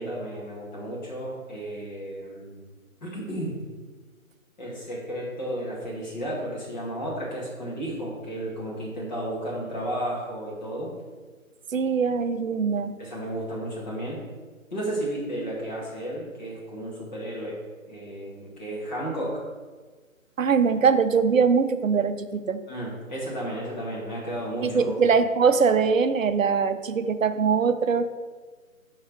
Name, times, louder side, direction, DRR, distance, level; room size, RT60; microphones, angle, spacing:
voice 1, 0.0-2.6 3.0-3.6 4.6-10.9 13.0-14.2 14.7-17.6 17.9-19.4 22.7-25.0, right 1 dB, 30° left, -5 dB, 1.7 m, -33 dB
voice 2, 11.7-13.0 20.4-22.6 24.6-28.1, right 5 dB, 65° right, 11 dB, 0.6 m, -22 dB
5.5 x 4.8 x 3.7 m, 1.4 s
figure-of-eight pair, 165°, 42 cm